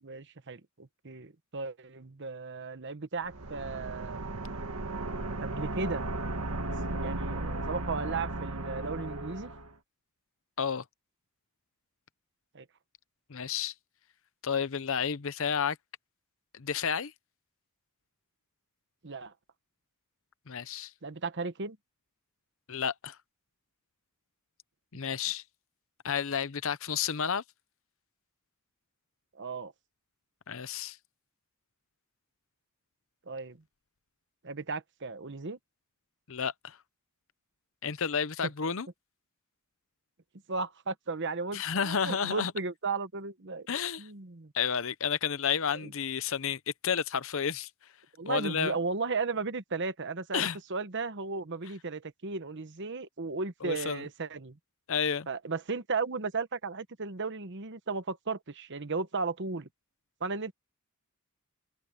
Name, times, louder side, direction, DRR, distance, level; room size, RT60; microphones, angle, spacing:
voice 1, 0.0-4.2 5.4-6.0 6.9-9.5 12.5-12.6 19.0-19.3 21.0-21.8 29.3-29.7 33.3-33.6 34.4-35.6 40.5-43.7 44.0-44.5 45.7-45.9 48.2-54.6 55.3-59.7 60.2-60.5, right 4 dB, 55° right, 1.1 m, -35 dB
sound 1, 3.2-9.7, right 2 dB, 85° right, 1.8 m, -35 dB
voice 2, 13.3-13.7 14.4-15.8 16.5-17.1 20.5-20.9 22.7-23.2 24.9-25.4 26.0-27.4 30.5-31.0 36.3-36.8 37.8-38.9 41.5-42.5 43.7-44.1 44.5-47.7 48.3-48.8 50.3-50.6 53.6-54.1 54.9-55.3, left 7 dB, 60° left, 0.8 m, -31 dB
open air
head